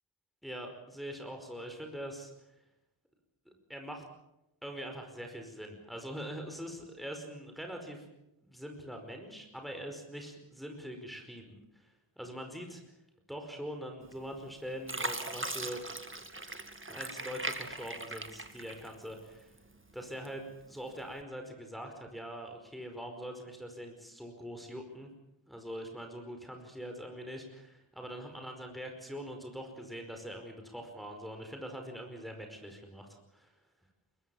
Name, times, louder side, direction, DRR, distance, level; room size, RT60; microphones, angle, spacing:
voice 1, 0.4-2.3 3.7-4.0 4.6-8.1 8.4-12.8 13.3-15.8 16.9-19.5 19.9-25.1 25.4-33.5, equal, ahead, 3 dB, 5.0 m, -43 dB
Fill (with liquid), 14.1-14.5 14.9-19.3 19.7-20.5 21.1-21.2, right 2 dB, 25° right, 2.0 m, -39 dB
23.0 x 21.5 x 7.2 m, 0.88 s
wide cardioid pair, 55°, 49 cm